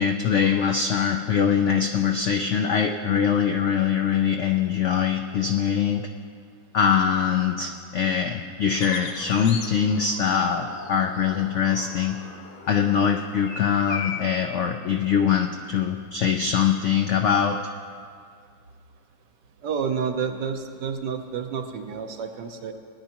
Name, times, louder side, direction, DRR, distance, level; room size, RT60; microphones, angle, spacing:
voice 1, 0.0-6.1 6.7-12.2 12.7-17.6, left 7 dB, 85° left, 4 dB, 0.6 m, -23 dB
sound 1, 8.7-14.3, left 5 dB, 65° left, 1.5 m, -38 dB
voice 2, 19.6-22.7, right 6 dB, 75° right, 5 dB, 1.5 m, -29 dB
20.0 x 10.5 x 3.0 m, 2.2 s
omnidirectional pair, 1.9 m